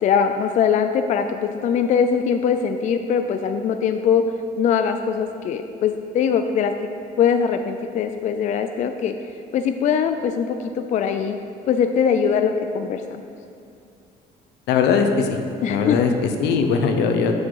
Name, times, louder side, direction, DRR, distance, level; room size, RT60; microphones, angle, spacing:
voice 1, 0.0-4.2 4.6-6.7 7.2-9.1 9.5-11.4 11.7-13.2 15.6-16.0, left 7 dB, 45° left, 7 dB, 0.4 m, -21 dB
voice 2, 14.7-15.4 15.7-17.3, left 5 dB, 80° left, 5 dB, 0.8 m, -20 dB
7.1 x 6.3 x 4.7 m, 2.5 s
cardioid pair, 110°, 17 cm